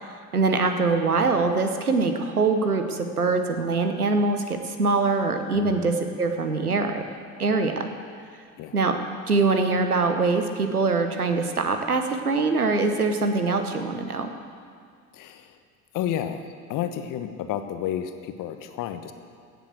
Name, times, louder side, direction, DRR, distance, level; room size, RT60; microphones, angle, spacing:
voice 1, 0.3-7.0 7.4-7.9 8.7-9.0 9.3-14.3, right 3 dB, 90° right, 7 dB, 1.1 m, -23 dB
voice 2, 5.5-5.9 8.6-8.7 15.1-15.6 15.9-19.1, left 10 dB, 45° left, 8 dB, 1.2 m, -31 dB
16.0 x 7.5 x 7.6 m, 2.2 s
figure-of-eight pair, 65°, 43 cm